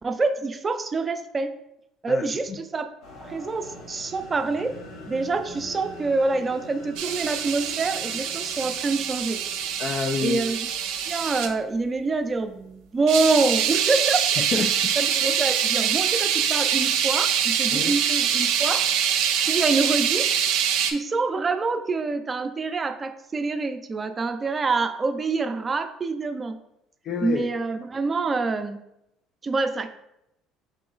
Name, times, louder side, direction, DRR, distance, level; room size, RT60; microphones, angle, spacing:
voice 1, 0.0-1.5 2.0-2.9 3.2-4.7 5.1-9.4 10.2-10.7 11.1-14.3 15.0-18.9 19.4-20.3 20.9-26.6 27.2-28.8 29.4-29.9, right 3 dB, 25° right, 8 dB, 0.4 m, -26 dB
voice 2, 2.1-2.6 9.8-10.4 14.4-15.0 17.7-17.9 27.0-27.5, left 5 dB, 50° left, 4 dB, 0.4 m, -29 dB
sound 1, 3.0-10.7, left 1 dB, 75° left, 1.0 m, -44 dB
sound 2, 7.0-11.5 13.1-20.9, right 8 dB, 80° right, 0.5 m, -24 dB
3.8 x 3.0 x 3.8 m, 0.81 s
supercardioid pair, 95°, 0 cm